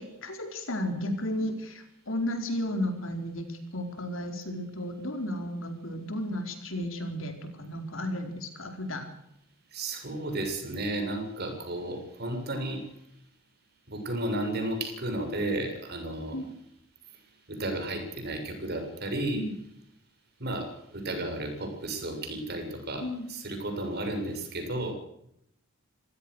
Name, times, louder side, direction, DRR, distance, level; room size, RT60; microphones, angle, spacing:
voice 1, 0.0-9.1 16.3-16.5 19.3-19.5 23.0-23.2, left 1 dB, 65° left, 6 dB, 4.5 m, -33 dB
voice 2, 9.7-12.8 13.9-16.4 17.5-19.4 20.4-24.9, right 1 dB, 50° right, 5 dB, 7.1 m, -33 dB
26.5 x 16.0 x 6.4 m, 0.76 s
head